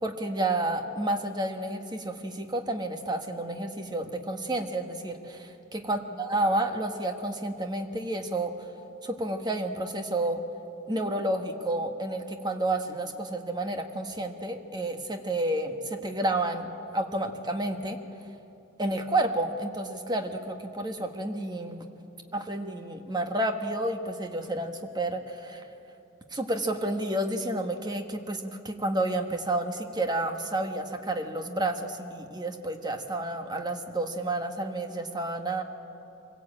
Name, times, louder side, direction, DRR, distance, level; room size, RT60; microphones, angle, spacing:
voice 1, 0.0-8.5 9.0-10.4 10.9-18.0 18.8-21.8 22.3-25.6 26.3-35.6, right 1 dB, 20° right, 5 dB, 1.4 m, -30 dB
24.0 x 17.0 x 8.7 m, 3.0 s
head